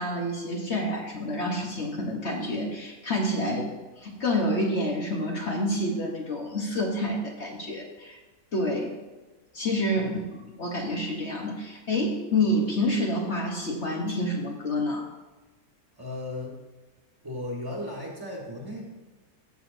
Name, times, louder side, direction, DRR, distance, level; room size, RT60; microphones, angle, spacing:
voice 1, 0.0-3.7 4.0-8.2 8.5-8.9 9.5-10.1 10.6-15.0, left 1 dB, 50° left, 0 dB, 1.2 m, -28 dB
voice 2, 9.9-10.3 16.0-16.6 17.2-18.8, left 1 dB, 15° right, -2 dB, 1.5 m, -36 dB
14.0 x 6.2 x 2.6 m, 1.2 s
omnidirectional pair, 1.6 m